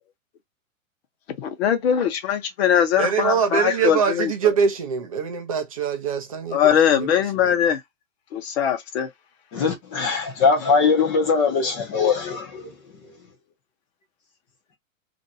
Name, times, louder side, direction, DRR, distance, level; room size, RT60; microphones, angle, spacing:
voice 1, 1.4-4.3 6.5-7.8 8.3-9.1, left 9 dB, 50° left, 1.0 m, -21 dB
voice 2, 3.0-7.5, right 6 dB, 30° right, 0.4 m, -24 dB
voice 3, 9.5-12.7, left 5 dB, 20° left, 0.5 m, -21 dB
2.6 x 2.1 x 4.0 m
hypercardioid pair, 155°, 41 cm